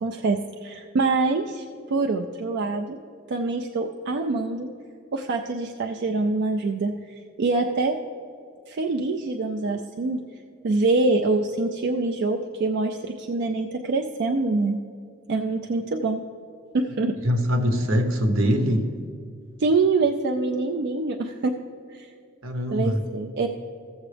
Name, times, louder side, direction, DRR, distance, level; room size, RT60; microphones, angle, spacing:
voice 1, 0.0-3.0 3.3-4.7 5.1-8.0 8.7-10.2 10.6-14.8 15.3-16.2 16.7-17.1 19.6-21.5 21.9-22.1 22.7-23.5, right 3 dB, 60° right, 3 dB, 0.4 m, -25 dB
voice 2, 17.2-18.9 22.4-23.0, equal, 80° right, 6 dB, 1.0 m, -22 dB
15.5 x 7.2 x 3.3 m, 2.4 s
head